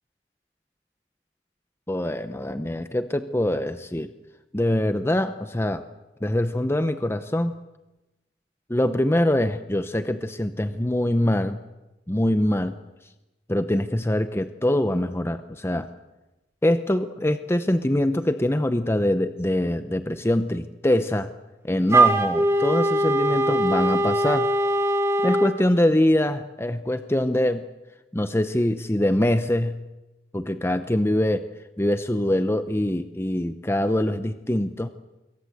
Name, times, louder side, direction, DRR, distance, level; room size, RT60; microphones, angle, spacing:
voice 1, 1.9-4.1 4.5-5.8 6.2-7.5 8.7-11.6 12.1-12.7 13.5-15.9 16.6-21.3 21.6-24.5 25.2-27.6 28.1-29.7 30.3-31.4 31.8-34.9, left 1 dB, 15° left, 10 dB, 0.8 m, -23 dB
Wind instrument woodwind instrument, 21.9-25.6, right 1 dB, 15° right, 1.9 m, -21 dB
26.5 x 22.5 x 7.9 m, 1.0 s
head